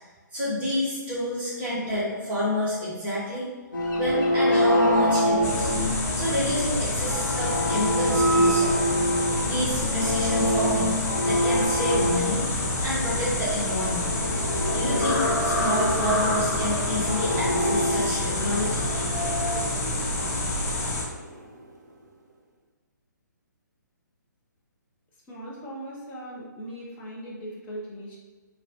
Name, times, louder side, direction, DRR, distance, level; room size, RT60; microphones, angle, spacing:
voice 1, 0.3-3.5 3.9-5.7 6.1-8.8 9.5-10.9 11.2-12.4 12.8-14.2 14.7-19.1, left 1 dB, 15° right, -8 dB, 0.9 m, -29 dB
sound 1, 3.7-19.6, equal, 85° left, 1.1 m, -26 dB
sound 2, 5.4-21.0, left 2 dB, 45° left, 1.0 m, -28 dB
sound 3, 13.6-22.3, right 2 dB, 55° right, 0.7 m, -35 dB
voice 2, 25.3-28.2, right 1 dB, 15° left, -5 dB, 0.8 m, -39 dB
6.3 x 2.3 x 2.6 m, 1.4 s
figure-of-eight pair, 130°, 10 cm